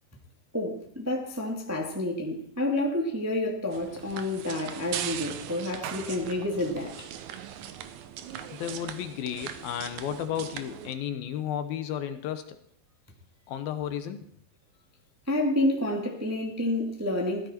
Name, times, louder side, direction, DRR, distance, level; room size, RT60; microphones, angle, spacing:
voice 1, 0.5-7.1 15.3-17.5, left 1 dB, 10° right, 0 dB, 1.0 m, -29 dB
sound 1, 3.7-10.9, right 10 dB, 80° right, 1.7 m, -39 dB
voice 2, 8.5-12.6 13.5-14.3, left 9 dB, 75° left, 9 dB, 2.7 m, -33 dB
16.5 x 13.0 x 4.4 m, 0.64 s
omnidirectional pair, 4.5 m